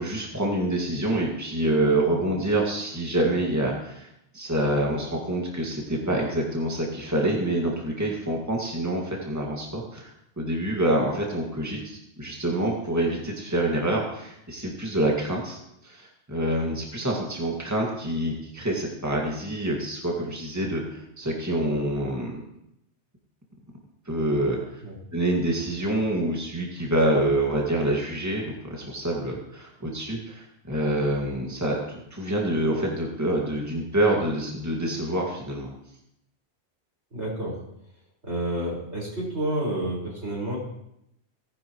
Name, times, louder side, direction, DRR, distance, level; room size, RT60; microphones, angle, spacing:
voice 1, 0.0-4.1 4.3-10.1 10.4-22.4 24.1-24.6 25.1-35.7, right 1 dB, 15° right, -2 dB, 2.1 m, -26 dB
voice 2, 37.1-37.6 38.2-40.6, right 1 dB, 75° right, -4 dB, 5.4 m, -29 dB
18.5 x 10.0 x 3.1 m, 0.80 s
omnidirectional pair, 1.1 m